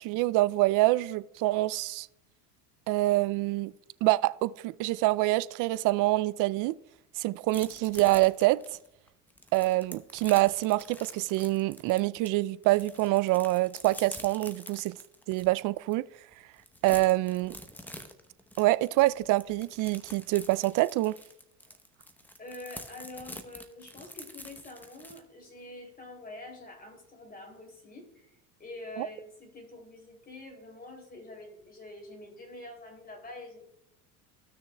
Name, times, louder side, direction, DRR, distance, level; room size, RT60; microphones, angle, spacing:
voice 1, 0.0-2.1 2.9-3.7 4.0-6.7 7.2-8.6 9.5-15.0 15.3-16.1 16.8-17.6 18.6-21.1 29.0-29.1, right 19 dB, 45° right, 0.5 m, -26 dB
sound 1, 7.5-12.3 12.6-15.5 15.9-16.0 16.3-25.2, left 1 dB, 5° left, 0.9 m, -46 dB
voice 2, 22.4-33.6, left 2 dB, 20° left, 3.1 m, -46 dB
15.5 x 6.4 x 2.3 m
hypercardioid pair, 90°, 43 cm